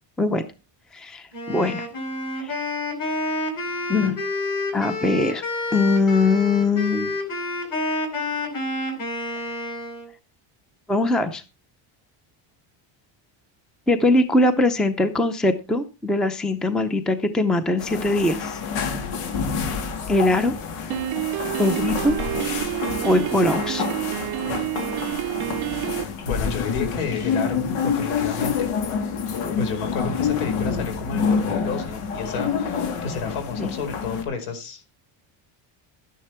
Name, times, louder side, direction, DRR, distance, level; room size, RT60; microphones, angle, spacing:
voice 1, 0.9-1.8 2.4-2.6 3.9-4.2 4.7-5.4 5.7-7.1 10.9-11.4 13.9-18.6 20.1-20.5 21.6-22.2 23.0-23.8 33.6-33.8, left 2 dB, ahead, 10 dB, 0.6 m, -21 dB
Wind instrument woodwind instrument, 1.3-10.1, left 2 dB, 40° left, 4.5 m, -29 dB
sound 1, 17.8-34.2, left 6 dB, 85° left, 3.0 m, -27 dB
Piano, 20.9-26.0, right 16 dB, 50° right, 0.5 m, -28 dB
voice 2, 26.2-28.7 29.6-34.9, left 5 dB, 70° left, 6 dB, 4.8 m, -31 dB
12.5 x 10.5 x 4.4 m, 0.30 s
cardioid pair, 175°, 50 cm